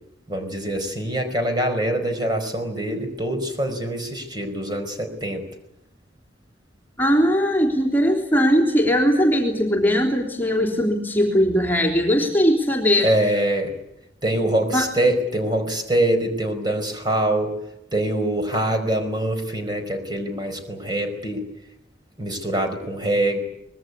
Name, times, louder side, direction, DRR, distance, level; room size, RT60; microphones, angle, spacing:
voice 1, 0.3-5.4 13.0-13.7 14.2-17.5 17.9-21.4 22.2-23.4, right 1 dB, 25° right, 5 dB, 4.9 m, -24 dB
voice 2, 7.0-13.1 14.7-14.9, equal, 10° left, 1 dB, 3.5 m, -19 dB
24.5 x 21.0 x 9.7 m, 0.81 s
head